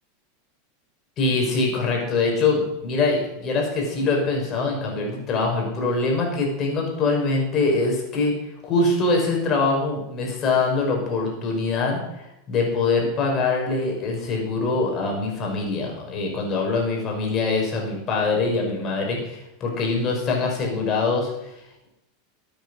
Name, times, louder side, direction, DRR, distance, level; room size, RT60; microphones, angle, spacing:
voice 1, 1.2-8.3 8.6-12.0 12.5-21.5, left 3 dB, 35° left, 0 dB, 5.6 m, -23 dB
13.5 x 9.2 x 6.5 m, 0.90 s
supercardioid pair, 125°, 0 cm